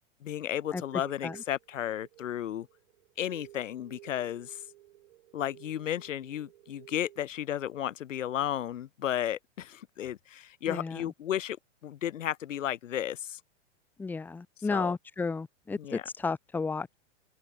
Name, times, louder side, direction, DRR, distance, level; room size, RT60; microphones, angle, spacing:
voice 1, 0.2-2.7 3.2-4.6 5.3-11.6 11.8-13.4 14.7-14.9 15.8-16.0, left 11 dB, 85° left, 2.3 m, -33 dB
sound 1, 0.6-7.3, right 15 dB, 50° right, 5.8 m, -54 dB
voice 2, 10.7-11.0 14.0-16.9, left 4 dB, 5° left, 1.5 m, -33 dB
open air
supercardioid pair, 170°, 37 cm